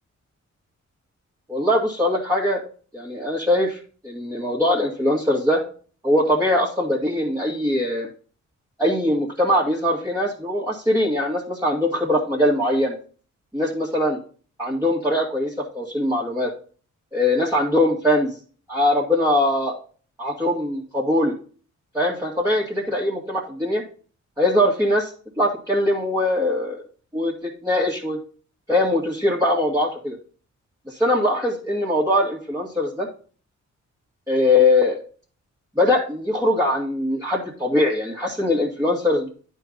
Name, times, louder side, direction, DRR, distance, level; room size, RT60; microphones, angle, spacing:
voice 1, 1.5-2.6 2.9-5.6 6.0-8.1 8.8-13.0 13.5-14.2 14.6-16.5 17.1-18.4 18.7-19.7 20.2-21.3 21.9-23.8 24.4-26.8 27.1-28.2 28.7-30.2 30.9-33.1 34.3-35.0 35.8-39.3, left 1 dB, 10° right, -5 dB, 2.0 m, -21 dB
10.5 x 4.6 x 3.9 m, 0.40 s
cardioid pair, 80°, 31 cm